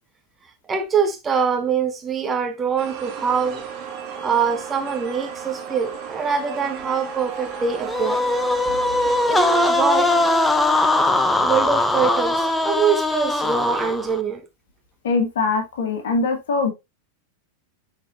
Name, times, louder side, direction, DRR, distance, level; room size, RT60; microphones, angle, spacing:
voice 1, 0.7-3.6 4.2-8.2 9.2-10.1 11.4-14.4, right 6 dB, 20° right, 1.2 m, -23 dB
sound 1, 2.8-10.4, right 7 dB, 35° right, 2.1 m, -34 dB
sound 2, 7.9-14.2, left 2 dB, 10° left, 0.9 m, -20 dB
voice 2, 15.0-16.7, left 4 dB, 60° left, 2.2 m, -22 dB
10.0 x 4.5 x 2.8 m
figure-of-eight pair, 90°, 0 cm